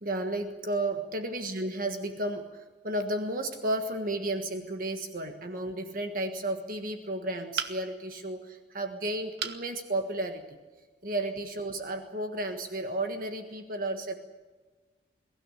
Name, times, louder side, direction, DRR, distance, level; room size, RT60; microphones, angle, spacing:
voice 1, 0.0-10.6 11.0-14.1, right 1 dB, 50° right, 6 dB, 1.5 m, -33 dB
sound 1, 7.6-8.1 9.4-9.7 10.2-10.3 10.7-10.8, right 7 dB, 70° right, 1.6 m, -34 dB
23.0 x 16.0 x 10.0 m, 1.3 s
head